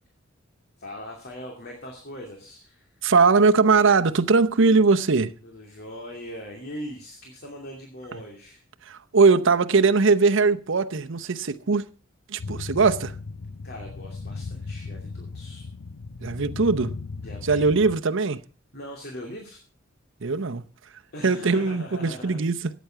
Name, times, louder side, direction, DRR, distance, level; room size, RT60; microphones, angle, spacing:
voice 1, 0.8-3.1 5.4-8.6 13.6-15.7 17.2-17.7 18.7-19.6 21.1-22.4, equal, 50° left, 2.7 m, -40 dB
voice 2, 3.0-5.3 8.9-11.8 12.3-13.1 16.2-16.9 17.5-18.4 20.2-20.6 21.2-22.6, right 4 dB, 65° right, 0.8 m, -20 dB
sound 1, 12.4-18.0, left 4 dB, 90° left, 0.7 m, -37 dB
14.0 x 9.3 x 5.7 m
head